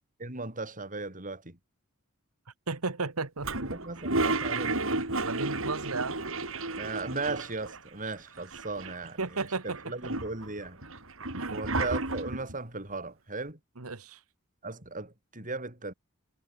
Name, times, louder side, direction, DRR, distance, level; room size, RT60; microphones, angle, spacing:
voice 1, 0.2-1.6 3.7-4.8 6.8-10.8 11.5-13.6 14.6-15.9, right 3 dB, 40° right, 7.6 m, -37 dB
voice 2, 2.7-3.5 5.2-6.2 9.2-9.8 11.3-11.6 13.8-14.2, right 3 dB, 90° right, 1.6 m, -33 dB
Toilet flush, 3.4-7.8 8.1-8.2 8.4-9.2 9.7-12.5, right 2 dB, 65° right, 7.6 m, -32 dB
head